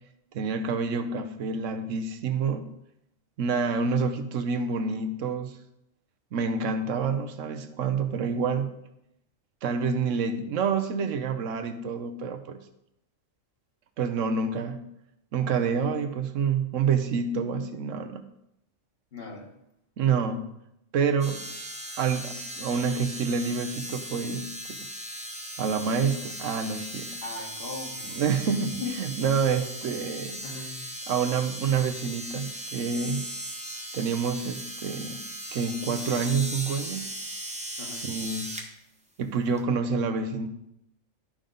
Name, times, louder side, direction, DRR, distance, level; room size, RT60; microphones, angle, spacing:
voice 1, 0.3-2.7 3.4-5.6 6.3-8.7 9.6-12.6 14.0-14.8 15.3-18.2 20.0-20.5 20.9-21.4 22.0-24.8 25.6-27.2 28.1-30.4 31.1-33.3 33.9-37.1 38.1-38.5 39.2-40.5, right 5 dB, 75° right, 8 dB, 1.0 m, -28 dB
voice 2, 19.1-19.5 27.2-28.2 28.5-29.0 30.4-30.8 37.8-38.1, left 4 dB, 50° left, 1 dB, 1.4 m, -38 dB
sound 1, 21.2-38.7 39.6-39.7, right 1 dB, 5° right, 0.9 m, -38 dB
11.5 x 5.2 x 3.8 m, 0.81 s
omnidirectional pair, 1.3 m